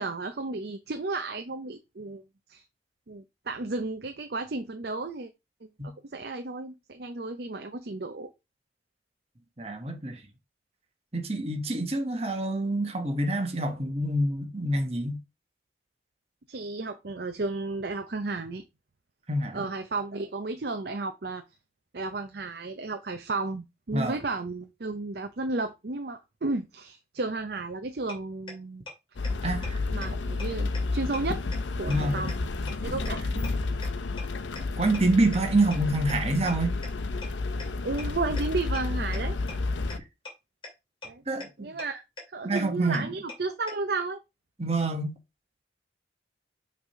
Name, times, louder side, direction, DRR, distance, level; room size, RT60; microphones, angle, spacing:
voice 1, 0.0-2.2 2.5-2.6 3.1-5.3 5.8-8.3 16.5-18.6 19.5-21.4 21.9-28.8 29.9-31.4 31.8-32.4 32.8-33.5 37.8-39.4 41.0-41.2 41.6-42.0 42.3-44.2, right 3 dB, 55° right, 0.6 m, -33 dB
voice 2, 9.6-10.2 11.1-15.2 19.3-19.7 23.9-24.2 29.4-29.8 31.9-32.2 34.8-36.7 39.9-40.0 41.3-41.7 42.4-43.1 44.6-45.2, right 2 dB, 35° right, 1.2 m, -27 dB
sound 1, 28.1-28.2 28.5-28.6 28.9-29.0 29.2-29.3 29.6-29.7 30.0-30.1 30.4-30.5 30.7-30.8 31.1-31.2 31.5-31.6 31.9-32.0 32.3-32.4 32.7-32.8 33.0-33.1 33.4-33.5 33.8-33.9 34.2-34.3 34.6-34.7 34.9-35.0 35.3-35.4 35.7-35.8 36.1-36.2 36.5-36.6 36.8-36.9 37.2-37.3 37.6-37.7 38.0-38.1 38.4-38.5 38.7-38.8 39.1-39.2 39.5-39.6 39.9-40.0 40.3-40.4 40.6-40.7 41.0-41.1 41.4-41.5 41.8-41.9 42.2-42.3 42.6-42.7 42.9-43.0 43.3-43.4 43.7-43.8, left 3 dB, 25° left, 2.4 m, -39 dB
sound 2, 29.2-40.0, left 3 dB, 75° left, 0.7 m, -31 dB
6.1 x 3.4 x 5.4 m
head